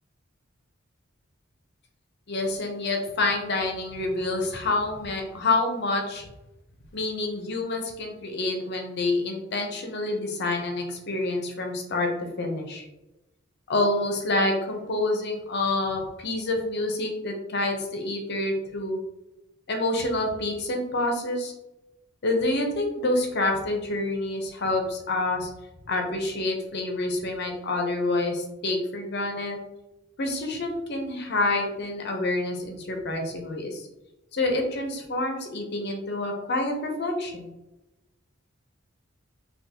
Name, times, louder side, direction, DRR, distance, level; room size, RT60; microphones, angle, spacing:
voice 1, 2.3-6.2 6.9-12.1 12.4-12.8 13.7-19.0 19.7-21.5 22.2-25.5 25.9-29.6 30.2-33.9 34.3-37.5, left 2 dB, 55° left, 2 dB, 0.7 m, -27 dB
3.7 x 2.4 x 2.8 m, 0.96 s
head